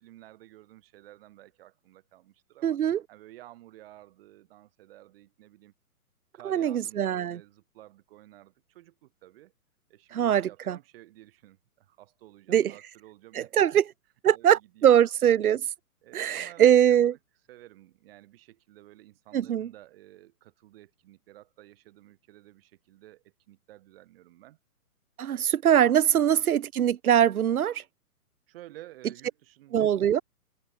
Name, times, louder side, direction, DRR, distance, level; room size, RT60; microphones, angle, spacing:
voice 1, 0.0-2.8 3.1-5.7 6.3-9.5 9.9-13.8 14.3-15.1 16.0-17.1 17.5-24.6 25.3-25.6 26.1-26.4 28.5-30.0, right 15 dB, 40° right, 7.0 m, -52 dB
voice 2, 2.6-3.0 6.4-7.4 10.1-10.8 12.5-12.7 13.3-13.8 14.2-15.6 16.1-17.1 19.3-19.7 25.2-27.8 29.7-30.2, right 10 dB, 70° right, 1.1 m, -22 dB
hypercardioid pair, 155°, 46 cm